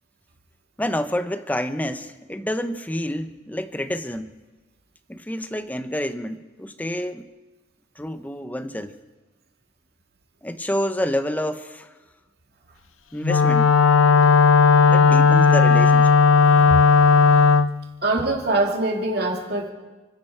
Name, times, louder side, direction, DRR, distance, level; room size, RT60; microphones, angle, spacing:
voice 1, 0.8-4.3 5.1-7.3 8.0-8.9 10.4-11.9 13.1-13.7 14.8-16.2 16.7-16.8, left 1 dB, 10° left, 10 dB, 0.6 m, -28 dB
Wind instrument woodwind instrument, 13.2-17.7, left 4 dB, 85° left, 0.6 m, -15 dB
voice 2, 18.0-19.7, right 2 dB, 50° right, 0 dB, 2.7 m, -23 dB
29.5 x 11.0 x 4.4 m, 1.2 s
head